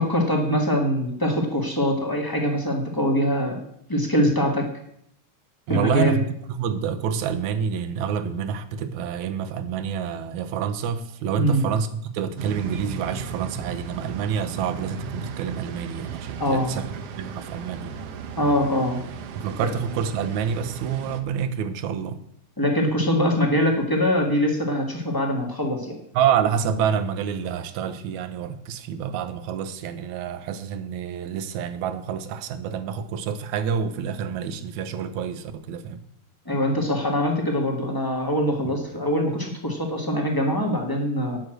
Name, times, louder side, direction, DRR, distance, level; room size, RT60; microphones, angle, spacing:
voice 1, 0.0-3.6 3.9-4.7 5.7-6.2 11.4-11.7 16.4-16.7 18.4-19.0 19.6-19.7 22.6-25.9 36.4-41.4, equal, 20° left, 0.5 m, -23 dB
voice 2, 5.7-6.2 6.5-11.9 12.1-16.9 17.2-18.0 19.4-22.2 26.1-36.0 38.7-38.8, right 7 dB, 80° right, 2.2 m, -27 dB
sound 1, 12.4-21.2, right 5 dB, 65° right, 1.6 m, -36 dB
9.9 x 6.2 x 7.7 m
omnidirectional pair, 3.4 m